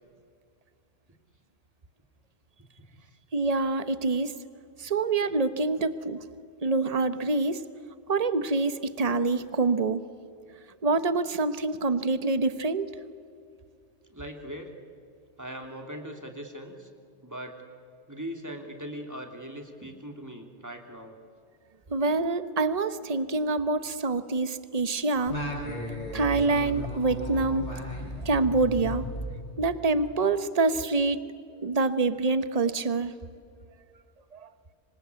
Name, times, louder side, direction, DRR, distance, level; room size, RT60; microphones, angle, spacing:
voice 1, 3.3-4.3 4.8-6.3 6.6-7.6 8.1-10.0 10.8-12.9 21.9-25.4 26.1-27.8 28.2-31.2 31.6-33.1 34.3-34.5, right 3 dB, 35° right, 12 dB, 1.1 m, -26 dB
voice 2, 14.1-14.7 15.4-16.9 17.2-17.6 18.1-21.2, equal, 15° right, 3 dB, 2.9 m, -40 dB
Singing, 25.3-30.0, equal, 35° left, 6.3 m, -35 dB
26.0 x 25.0 x 8.3 m, 2.4 s
omnidirectional pair, 1.2 m